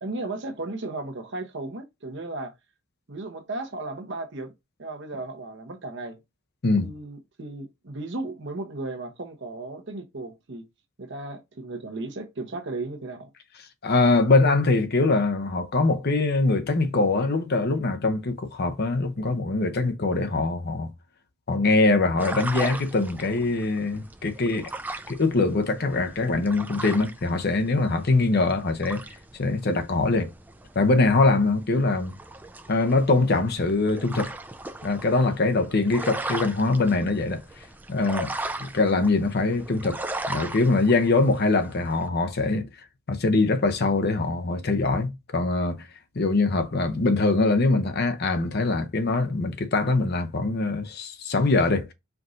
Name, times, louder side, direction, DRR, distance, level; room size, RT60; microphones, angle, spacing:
voice 1, 0.0-2.5 3.1-4.5 4.8-6.2 6.8-10.6 11.0-13.3, right 2 dB, 55° right, 0.9 m, -35 dB
voice 2, 13.8-20.9 21.5-24.7 25.1-29.0 29.4-30.3 30.8-32.2 32.7-34.3 34.8-37.4 37.9-38.3 38.6-40.0 40.3-42.7 43.1-45.9 46.2-51.9, left 3 dB, 50° left, 0.7 m, -23 dB
sound 1, 22.2-42.1, right 2 dB, 10° right, 0.4 m, -38 dB
4.6 x 2.6 x 3.7 m
head